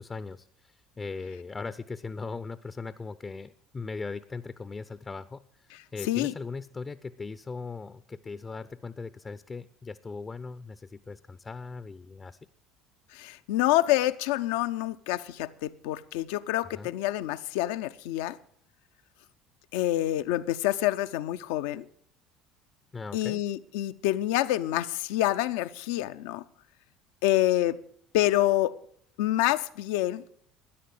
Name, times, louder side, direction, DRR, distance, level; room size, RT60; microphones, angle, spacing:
voice 1, 0.0-12.4 16.7-16.9 22.9-23.4, left 4 dB, 25° left, 0.6 m, -39 dB
voice 2, 13.1-18.4 19.7-21.9 23.1-26.4 27.2-27.8 28.1-28.8 29.2-30.2, left 14 dB, 70° left, 0.5 m, -27 dB
13.0 x 10.0 x 7.7 m
hypercardioid pair, 65°, 0 cm